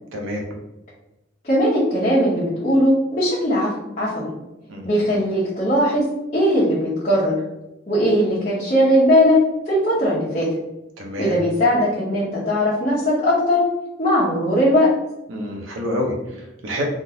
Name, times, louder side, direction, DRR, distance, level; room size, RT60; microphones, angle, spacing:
voice 1, 0.1-0.4 4.7-4.9 11.0-11.3 15.3-16.8, left 1 dB, 90° right, 0 dB, 0.8 m, -27 dB
voice 2, 1.4-4.3 4.8-6.1 6.3-7.4 7.9-9.4 9.6-10.5 11.2-13.6 14.0-14.9, equal, 35° left, -11 dB, 0.9 m, -19 dB
3.6 x 2.4 x 2.8 m, 0.95 s
head